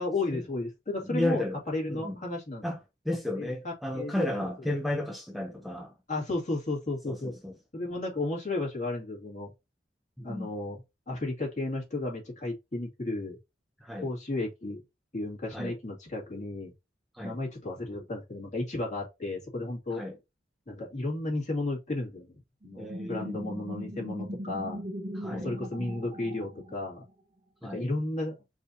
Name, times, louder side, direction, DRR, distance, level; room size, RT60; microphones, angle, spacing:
voice 1, 0.0-2.6 3.4-4.5 6.1-7.4 7.7-9.5 10.2-10.8 11.1-13.4 14.0-14.8 15.1-16.7 17.2-20.0 20.7-24.8 25.3-27.0 27.7-28.3, left 2 dB, 45° left, 2.2 m, -33 dB
voice 2, 1.0-1.6 1.9-2.2 2.6-2.8 3.0-5.9 7.1-7.5 10.2-10.5 13.8-14.1 15.5-15.7 17.1-17.4 19.9-20.1 22.8-23.4 25.1-25.5 27.6-27.9, left 1 dB, ahead, 0.6 m, -33 dB
sound 1, 22.6-27.1, equal, 30° right, 0.8 m, -39 dB
4.8 x 2.8 x 4.0 m
head